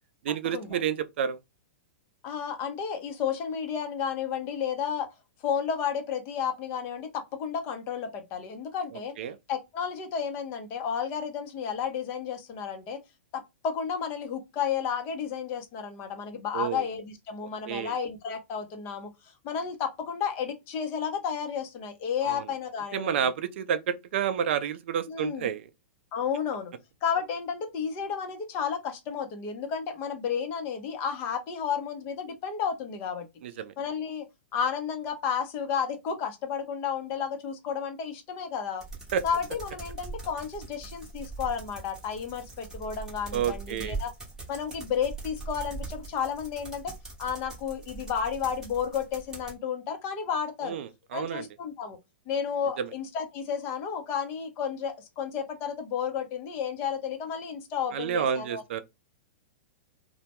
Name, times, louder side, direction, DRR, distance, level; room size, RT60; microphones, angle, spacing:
voice 1, 0.2-1.4 8.9-9.4 16.5-16.8 17.7-17.9 22.2-22.4 22.9-25.7 33.4-33.7 39.1-39.2 43.3-44.0 50.6-51.5 52.8-52.9 57.9-58.8, right 8 dB, 65° right, 0.3 m, -30 dB
voice 2, 2.2-5.1 5.4-9.1 9.5-13.0 13.3-23.2 25.1-25.5 26.1-26.7 27.0-33.3 33.8-34.3 34.5-38.8 39.2-44.1 44.5-46.9 47.2-50.8 51.1-52.0 52.3-58.6, left 7 dB, 35° left, 0.6 m, -32 dB
sound 1, 38.8-49.6, right 3 dB, 10° right, 0.8 m, -41 dB
2.2 x 2.0 x 2.8 m
hypercardioid pair, 145°, 7 cm